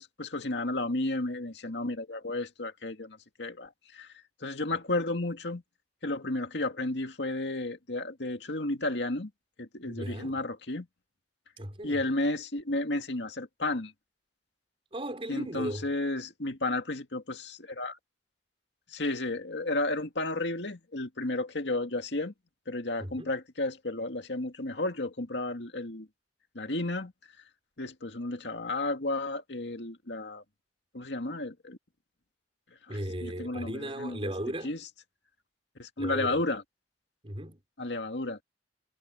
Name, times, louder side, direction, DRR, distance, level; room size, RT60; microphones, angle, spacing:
voice 1, 0.0-4.1 4.4-5.6 6.0-9.3 9.6-10.9 11.8-13.9 15.3-18.0 18.9-22.3 22.7-26.1 26.5-27.1 27.8-30.4 30.9-31.8 32.9-34.3 34.6-34.8 35.8-36.6 37.8-38.4, left 2 dB, 75° left, 2.1 m, -32 dB
voice 2, 9.8-10.4 11.6-12.0 14.9-15.9 23.0-23.3 32.9-34.7 36.0-36.4 37.2-37.6, right 1 dB, 30° right, 4.7 m, -36 dB
head